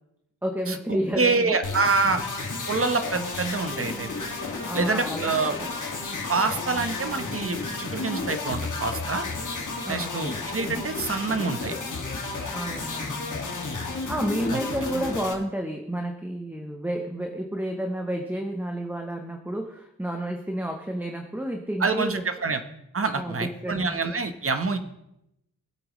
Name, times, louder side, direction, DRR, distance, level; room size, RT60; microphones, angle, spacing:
voice 1, 0.4-1.6 4.6-5.7 9.8-10.3 12.5-13.6 14.1-22.2 23.1-24.2, right 1 dB, 5° right, 3 dB, 0.9 m, -31 dB
voice 2, 1.2-2.2 2.7-4.3 4.7-5.6 6.3-9.2 9.9-11.7 14.5-14.6 21.8-22.6 22.9-24.8, right 4 dB, 35° right, 8 dB, 1.1 m, -26 dB
sound 1, 1.6-15.3, left 3 dB, 50° left, 2.2 m, -32 dB
24.0 x 8.4 x 3.1 m, 0.84 s
wide cardioid pair, 130°, 37 cm